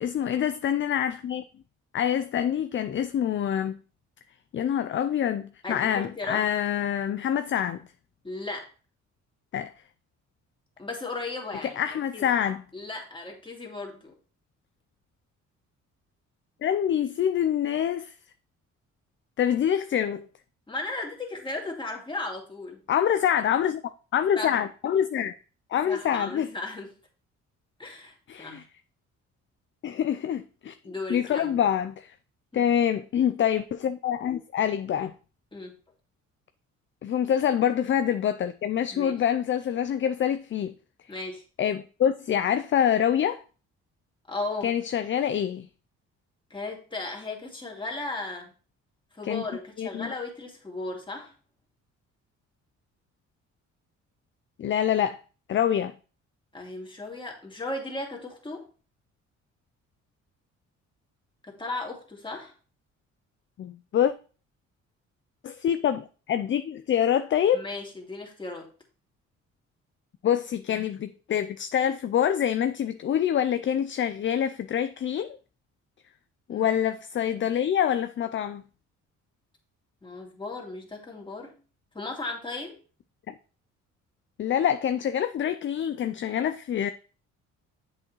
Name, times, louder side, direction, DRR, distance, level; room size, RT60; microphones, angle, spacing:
voice 1, 0.0-1.4 1.9-3.7 4.5-7.8 9.5-9.7 11.6-12.6 16.6-18.1 19.4-20.3 22.9-23.8 24.1-25.3 25.7-26.5 28.3-28.6 29.8-32.1 32.5-35.1 37.0-40.8 41.6-43.4 44.6-45.7 49.2-49.4 49.8-50.1 54.6-55.2 55.5-55.9 63.6-64.1 65.4-67.6 70.2-75.4 76.5-78.6 83.3-83.4 84.4-86.9, left 9 dB, 40° left, 0.4 m, -26 dB
voice 2, 5.6-6.4 8.2-8.7 10.8-12.3 12.7-14.1 20.7-22.8 24.4-24.6 25.8-26.9 27.8-28.7 30.8-31.5 32.5-32.7 35.5-35.8 38.9-39.2 41.1-41.4 44.3-44.7 46.5-48.5 49.1-51.3 56.5-58.7 61.4-62.5 67.5-68.7 76.5-76.7 80.0-81.6 81.9-82.8, left 2 dB, 15° left, 2.3 m, -36 dB
7.6 x 6.3 x 3.0 m
cardioid pair, 90°, 30 cm